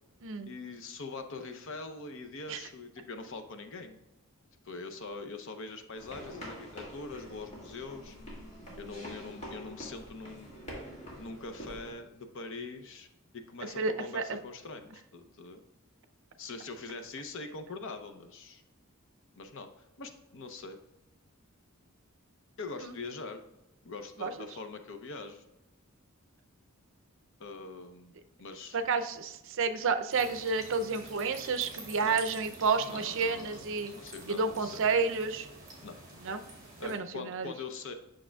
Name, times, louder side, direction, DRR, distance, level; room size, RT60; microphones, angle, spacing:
voice 1, 0.5-4.0 4.6-8.2 8.8-10.5 11.2-13.1 13.3-15.6 16.4-18.6 19.4-20.8 22.6-23.4 23.8-25.4 27.4-28.8 32.0-32.2 32.9-34.9 35.8-36.2 36.8-37.9, left 3 dB, 65° left, 7 dB, 0.7 m, -43 dB
sound 1, 6.0-11.9, equal, 35° left, 2.1 m, -45 dB
voice 2, 13.8-14.4 22.8-22.9 24.2-24.5 28.7-33.9 34.3-35.5 36.2-36.4 36.8-37.5, right 4 dB, 65° right, 9 dB, 0.5 m, -30 dB
sound 2, 30.1-37.0, right 2 dB, 20° right, 2.5 m, -48 dB
8.6 x 6.2 x 2.3 m, 0.94 s
head